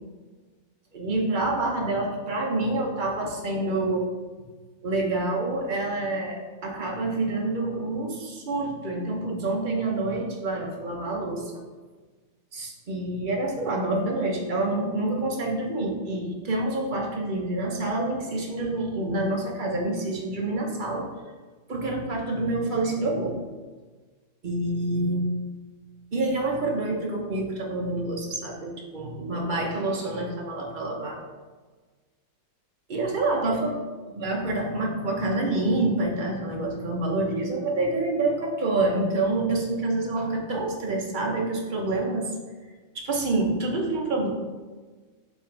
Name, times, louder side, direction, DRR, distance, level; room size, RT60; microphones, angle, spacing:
voice 1, 0.9-4.1 4.8-11.5 12.5-21.1 21.7-23.4 24.4-25.3 26.1-31.2 32.9-33.8 34.2-42.3 42.9-44.3, right 2 dB, 50° right, -1 dB, 0.6 m, -27 dB
8.0 x 3.9 x 3.9 m, 1.4 s
omnidirectional pair, 2.3 m